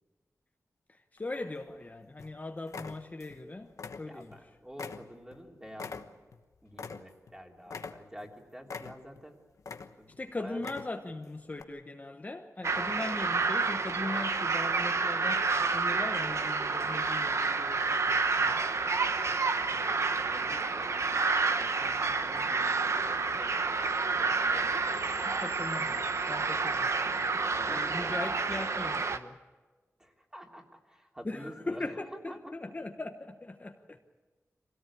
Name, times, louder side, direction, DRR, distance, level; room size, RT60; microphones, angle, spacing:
voice 1, 0.9-3.7 4.0-4.4 10.2-18.6 25.3-27.4 27.7-29.4 31.2-34.0, left 2 dB, 30° left, 1.2 m, -40 dB
sound 1, 1.2-1.8 2.2-2.4 2.7-3.4 3.7-4.4 4.8-7.3 7.7-8.3 8.7-9.2 9.6-10.2 10.5-11.1 11.6-11.7, left 5 dB, 80° left, 1.1 m, -43 dB
voice 2, 4.0-6.2 6.6-9.4 10.0-10.6 19.6-21.3 21.5-23.6 24.1-25.2 27.4-28.1 30.0-32.7, equal, 10° right, 3.2 m, -49 dB
sound 2, 12.6-29.2, right 4 dB, 60° right, 1.0 m, -29 dB
24.5 x 17.5 x 8.7 m
wide cardioid pair, 95°, 5 cm